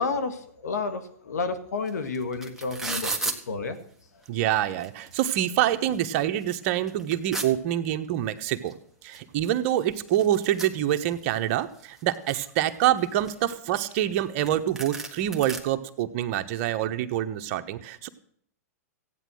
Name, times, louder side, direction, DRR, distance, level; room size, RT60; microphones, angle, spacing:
voice 1, 0.0-3.8, left 4 dB, 80° left, 10 dB, 1.9 m, -31 dB
sound 1, 1.9-2.0 2.1-3.4 4.2-4.3 4.7-5.5 5.9-6.0 6.4-7.5 8.7-8.8 9.1-9.2 9.4-11.4 11.8-12.5 13.0-14.2 14.5-14.6 14.8-15.6, right 3 dB, 5° right, 1.6 m, -34 dB
voice 2, 4.3-8.7 9.0-18.1, right 12 dB, 50° right, 9 dB, 1.1 m, -26 dB
15.0 x 9.3 x 6.3 m, 0.64 s
hypercardioid pair, 125°, 9 cm